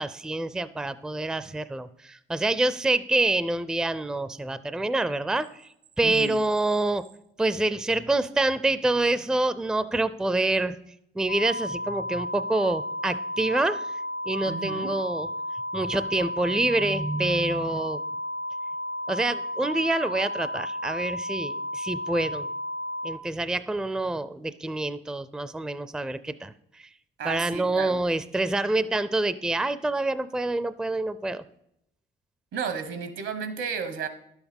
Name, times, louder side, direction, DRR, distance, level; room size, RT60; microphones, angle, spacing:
voice 1, 0.0-5.7 6.0-7.1 7.4-10.8 11.2-13.9 14.3-15.3 15.7-18.0 19.1-22.5 23.0-26.9 27.2-31.4, right 2 dB, 5° right, 15 dB, 0.4 m, -27 dB
voice 2, 6.0-6.4 14.4-14.9 27.2-28.0 32.5-34.1, right 6 dB, 75° right, 11 dB, 1.4 m, -33 dB
sound 1, 11.3-23.1, left 1 dB, 80° left, 1.5 m, -33 dB
11.0 x 7.1 x 5.3 m, 0.77 s
cardioid pair, 90°, 20 cm